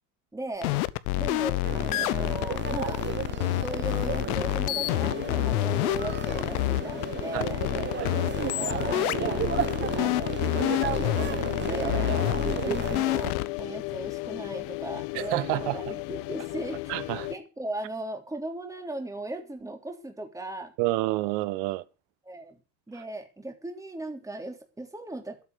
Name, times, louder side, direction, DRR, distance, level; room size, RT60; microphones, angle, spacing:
voice 1, 0.3-0.8 1.2-3.1 3.6-9.5 9.9-16.8 17.3-20.7 22.2-22.6 22.9-25.4, right 1 dB, 10° right, 3.5 m, -38 dB
sound 1, 0.6-13.6, left 18 dB, 90° left, 1.0 m, -28 dB
sound 2, 1.6-13.3, right 9 dB, 25° right, 0.9 m, -34 dB
sound 3, 4.8-17.4, left 23 dB, 65° left, 1.0 m, -36 dB
voice 2, 15.1-15.8 16.9-17.3 20.8-21.8, right 19 dB, 70° right, 1.3 m, -28 dB
12.5 x 8.2 x 8.1 m
supercardioid pair, 125°, 43 cm